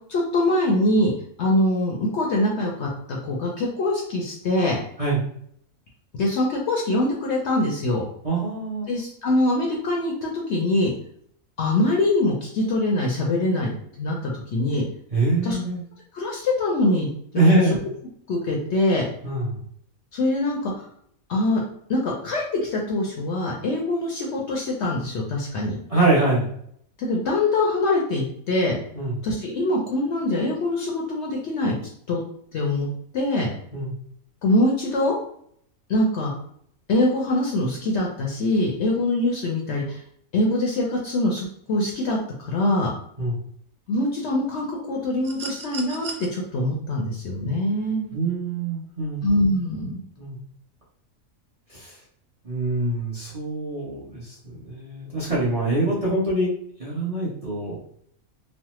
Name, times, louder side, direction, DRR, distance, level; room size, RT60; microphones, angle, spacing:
voice 1, 0.1-1.1 1.4-4.8 6.1-8.0 8.9-10.9 11.6-14.8 15.4-15.6 16.1-17.6 18.3-19.1 20.1-20.8 21.3-21.6 21.9-25.8 27.0-28.8 29.2-31.8 32.1-32.2 32.5-32.9 33.1-33.5 34.4-35.2 35.9-36.3 36.9-40.0 40.3-42.9 43.9-48.1 49.2-50.0, left 1 dB, 65° left, -1 dB, 0.7 m, -23 dB
voice 2, 8.2-8.9 15.1-15.8 17.3-17.8 19.2-19.6 25.9-26.5 28.9-29.2 33.7-33.9 43.2-43.4 48.1-49.2 50.2-50.4 51.7-52.0 52.4-56.5 56.8-57.8, right 2 dB, 35° right, -6 dB, 0.7 m, -24 dB
sound 1, 45.2-46.3 47.8-47.9, right 5 dB, 85° right, 0.4 m, -36 dB
3.1 x 2.0 x 2.9 m, 0.66 s
omnidirectional pair, 1.5 m